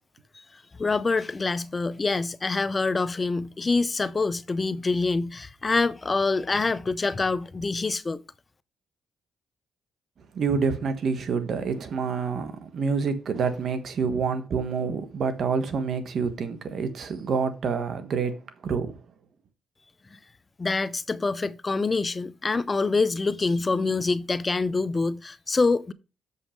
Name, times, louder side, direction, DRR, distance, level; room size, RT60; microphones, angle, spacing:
voice 1, 0.5-8.2 20.1-20.2 20.6-25.9, left 3 dB, 25° left, 0.5 m, -26 dB
voice 2, 10.3-19.0, right 5 dB, 60° right, 1.4 m, -27 dB
7.2 x 5.6 x 5.0 m
cardioid pair, 90°, 0 cm